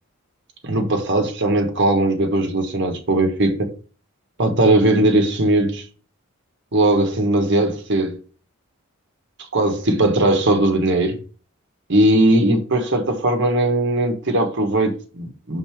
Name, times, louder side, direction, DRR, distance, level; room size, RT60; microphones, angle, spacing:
voice 1, 0.6-3.7 4.4-5.8 6.7-8.2 9.5-11.2 11.9-15.6, right 1 dB, 55° right, 1.3 m, -19 dB
5.4 x 3.9 x 5.9 m
head